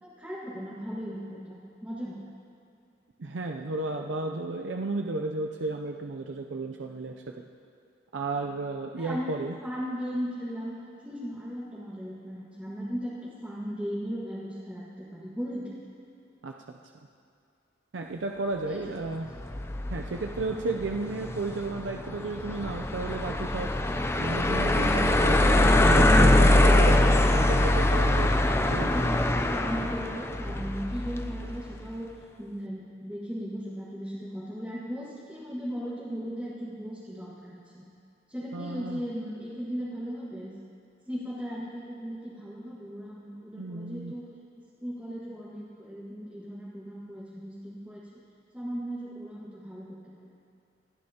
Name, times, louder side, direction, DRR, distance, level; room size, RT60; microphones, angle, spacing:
voice 1, 0.0-2.2 9.0-10.7 11.0-15.7 18.6-18.8 28.5-32.1 32.4-37.8 38.3-40.5 41.1-44.2 44.8-48.1 48.5-49.9 50.1-50.3, equal, 5° right, -8 dB, 1.7 m, -37 dB
voice 2, 3.2-7.4 8.1-9.6 16.4-16.8 17.9-19.3 19.9-23.7 24.2-28.4 28.7-28.9 38.5-39.0 43.5-44.1, right 3 dB, 70° right, 3 dB, 0.5 m, -33 dB
sound 1, 19.4-31.6, left 1 dB, 15° left, 0.5 m, -23 dB
27.5 x 9.7 x 2.9 m, 2.5 s
head